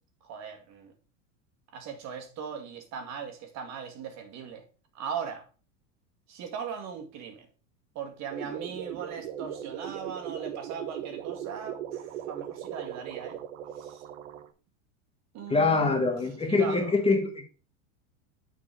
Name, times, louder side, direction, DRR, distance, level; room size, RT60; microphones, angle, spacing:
voice 1, 0.2-0.9 1.7-4.6 4.9-5.5 6.3-7.5 8.0-13.4 13.8-14.0 15.3-16.0 16.4-17.0, right 7 dB, 45° right, 1.9 m, -39 dB
sound 1, 8.3-14.5, right 10 dB, 75° right, 1.1 m, -38 dB
voice 2, 15.5-17.4, left 3 dB, 15° left, 1.5 m, -24 dB
7.2 x 4.6 x 4.8 m
hypercardioid pair, 105°, 37 cm